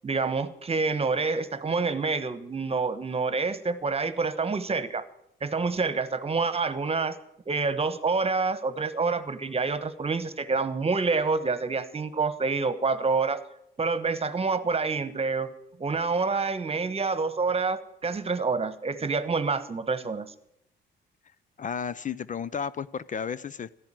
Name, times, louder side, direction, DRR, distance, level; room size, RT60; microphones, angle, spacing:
voice 1, 0.0-5.0 5.4-7.2 7.5-13.4 13.8-15.5 15.8-20.3, right 4 dB, 30° right, 1.3 m, -27 dB
voice 2, 21.6-23.7, left 7 dB, 40° left, 0.6 m, -33 dB
14.0 x 10.5 x 8.9 m
cardioid pair, 90°, 20 cm